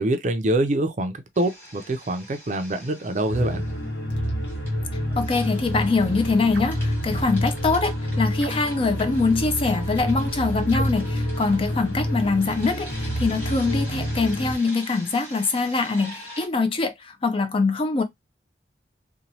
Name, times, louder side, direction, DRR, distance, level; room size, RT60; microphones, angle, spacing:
voice 1, 0.0-3.6, right 1 dB, 45° right, 0.5 m, -25 dB
sound 1, 1.3-3.9 4.2-16.5, equal, 15° left, 1.6 m, -44 dB
sound 2, 3.3-14.6, equal, 85° left, 1.1 m, -28 dB
voice 2, 5.1-18.0, left 3 dB, 30° left, 0.4 m, -23 dB
sound 3, 6.5-6.9 8.4-8.9 10.7-11.1, right 4 dB, 90° right, 0.7 m, -39 dB
2.9 x 2.2 x 2.7 m
head